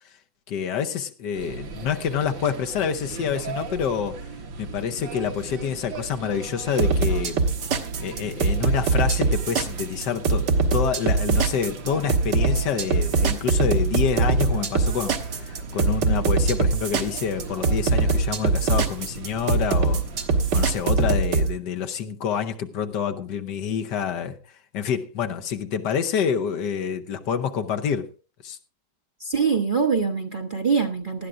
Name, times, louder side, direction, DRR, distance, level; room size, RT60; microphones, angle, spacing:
voice 1, 0.5-4.3 4.6-7.4 8.0-20.0 20.5-24.4 24.7-28.1 28.4-28.6, left 7 dB, 70° left, 1.4 m, -27 dB
sound 1, 1.3-20.8, right 4 dB, 80° right, 2.1 m, -37 dB
sound 2, 6.8-21.5, right 4 dB, 65° right, 1.8 m, -22 dB
voice 2, 29.2-31.3, right 5 dB, 35° right, 0.9 m, -24 dB
18.5 x 12.5 x 2.5 m
omnidirectional pair, 2.0 m